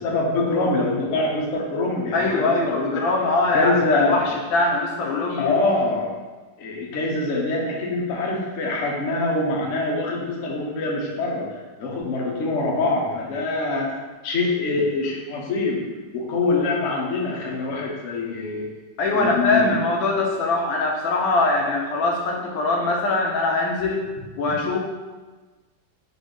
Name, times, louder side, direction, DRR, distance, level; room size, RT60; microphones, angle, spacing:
voice 1, 0.0-3.0 3.5-4.1 5.4-6.1 6.6-11.5 11.8-13.9 14.2-15.8 16.1-18.7 19.1-19.8, left 2 dB, 55° left, -2 dB, 0.9 m, -24 dB
voice 2, 2.1-5.5 19.0-24.0 24.4-24.9, left 2 dB, 85° left, 0 dB, 1.5 m, -22 dB
4.0 x 3.4 x 3.7 m, 1.3 s
omnidirectional pair, 2.1 m